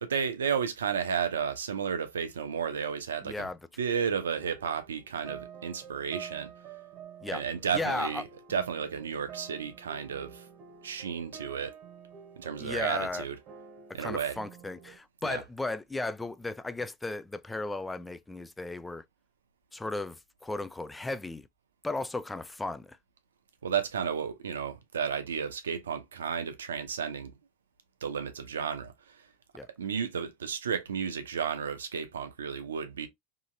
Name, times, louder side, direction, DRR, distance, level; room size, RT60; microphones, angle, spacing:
voice 1, 0.0-3.5 3.8-6.5 7.3-10.4 10.8-11.7 12.4-13.4 13.9-14.4 15.2-15.4 23.6-27.3 28.0-29.2 29.8-33.1, right 7 dB, 85° right, 0.6 m, -32 dB
voice 2, 3.2-3.6 7.2-7.4 7.7-8.2 12.6-13.3 13.9-19.0 19.7-21.5 21.8-23.0 29.5-29.7, left 2 dB, 10° left, 0.3 m, -35 dB
sound 1, 4.2-15.0, right 7 dB, 45° right, 0.9 m, -49 dB
2.8 x 2.7 x 2.5 m
hypercardioid pair, 90°, 0 cm